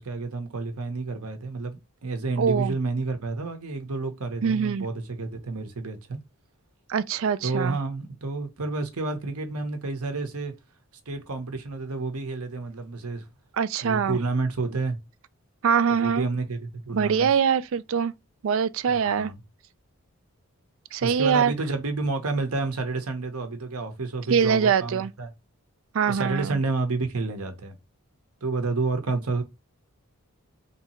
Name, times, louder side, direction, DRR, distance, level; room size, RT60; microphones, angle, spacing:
voice 1, 0.0-6.2 7.4-10.5 11.1-13.2 13.8-15.0 15.9-17.3 18.9-19.4 21.0-25.3 26.1-27.8 28.4-29.4, right 3 dB, 80° right, 1.0 m, -30 dB
voice 2, 2.4-2.7 4.4-4.9 6.9-7.8 13.6-14.2 15.6-16.3 16.9-18.1 18.4-19.3 20.9-21.5 24.3-25.1 25.9-26.6, right 7 dB, 60° right, 0.3 m, -23 dB
3.4 x 2.9 x 4.3 m
head